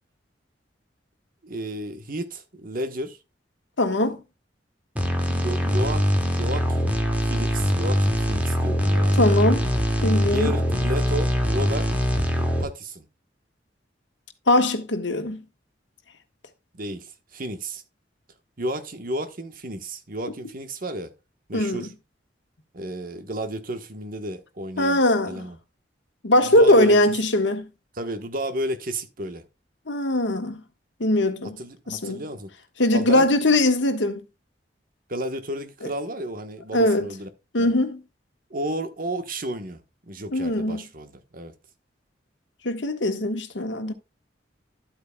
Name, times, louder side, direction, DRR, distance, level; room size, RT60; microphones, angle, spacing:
voice 1, 1.4-3.2 4.0-4.1 5.1-7.0 7.2-9.3 10.2-11.9 12.4-13.0 16.7-17.8 18.6-21.1 21.5-21.9 22.7-25.0 25.2-25.6 26.4-27.0 28.0-29.4 31.6-32.5 32.9-33.3 35.1-37.3 37.6-37.8 38.5-39.8 40.1-41.5, right 1 dB, 50° right, 1.2 m, -32 dB
voice 2, 3.8-4.2 9.2-9.6 10.0-10.5 14.5-15.4 21.5-21.9 24.8-25.4 26.2-27.7 29.9-30.6 31.0-31.6 31.9-32.2 32.8-34.2 35.8-35.9 36.7-37.1 37.5-38.0 40.3-40.8 42.6-43.9, left 1 dB, 80° left, 1.5 m, -21 dB
sound 1, 5.0-12.6, equal, 10° right, 2.2 m, -22 dB
12.0 x 8.5 x 2.3 m
head